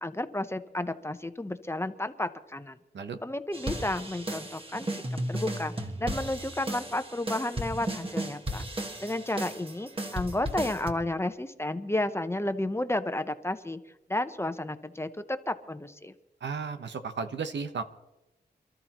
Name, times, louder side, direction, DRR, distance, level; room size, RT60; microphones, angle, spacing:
voice 1, 0.0-2.8 3.2-4.9 5.3-5.7 6.0-8.7 9.0-13.8 14.1-16.1, left 1 dB, 15° left, 9 dB, 0.9 m, -32 dB
sound 1, 3.5-10.9, right 1 dB, 30° right, 1.7 m, -35 dB
voice 2, 16.4-17.8, right 5 dB, 85° right, 8 dB, 1.1 m, -34 dB
27.5 x 13.0 x 3.0 m, 0.96 s
wide cardioid pair, 80°, 18 cm